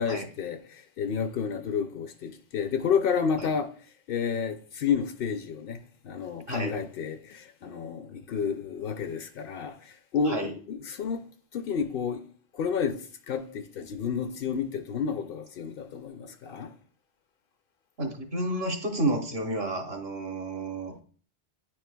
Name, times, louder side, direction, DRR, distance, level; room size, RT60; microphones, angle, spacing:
voice 1, 0.0-3.7 4.1-5.8 6.0-11.2 11.5-12.2 12.5-16.7, left 6 dB, 65° left, 0.7 m, -30 dB
voice 2, 18.0-21.0, right 1 dB, 70° right, 1.5 m, -31 dB
9.7 x 4.3 x 2.2 m
omnidirectional pair, 1.1 m